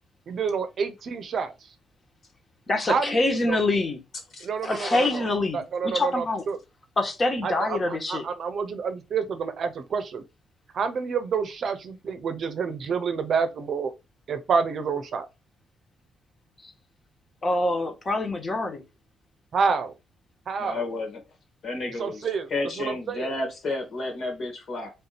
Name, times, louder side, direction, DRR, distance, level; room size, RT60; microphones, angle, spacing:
voice 1, 0.3-1.5 2.9-3.6 4.4-5.3 5.5-6.6 7.4-10.2 10.7-13.9 14.3-15.3 19.5-19.9 20.5-20.8 22.0-22.5 22.8-23.3, right 5 dB, 55° right, 0.7 m, -28 dB
voice 2, 2.7-4.0 4.6-6.4 7.0-8.2 17.4-18.8, left 2 dB, 35° left, 1.4 m, -25 dB
voice 3, 20.6-21.2 21.6-24.9, left 2 dB, 60° left, 2.1 m, -31 dB
3.5 x 2.7 x 4.1 m
cardioid pair, 90°, 0 cm